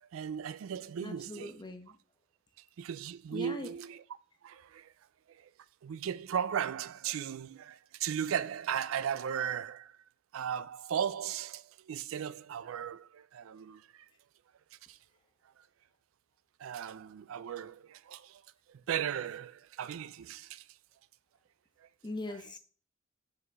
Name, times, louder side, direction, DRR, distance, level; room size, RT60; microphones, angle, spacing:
voice 1, 0.0-1.6 2.6-4.0 4.4-4.9 5.3-5.5 5.8-10.0 10.3-14.1 14.9-15.0 16.6-18.4 18.7-20.7 21.8-21.9, right 8 dB, 85° right, 0.4 m, -37 dB
voice 2, 1.0-2.0 3.3-3.7 22.0-22.6, left 2 dB, 20° left, 0.9 m, -41 dB
5.3 x 4.1 x 5.8 m
head